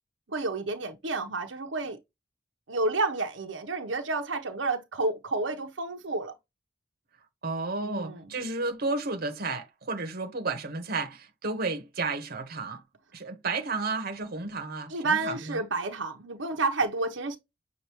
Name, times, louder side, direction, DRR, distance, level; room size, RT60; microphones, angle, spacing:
voice 1, 0.3-2.0 2.7-6.3 7.8-8.3 14.9-17.4, right 3 dB, 85° right, 0.9 m, -30 dB
voice 2, 7.4-12.8 13.1-15.6, right 3 dB, 55° right, 1.1 m, -32 dB
6.8 x 2.6 x 3.0 m
head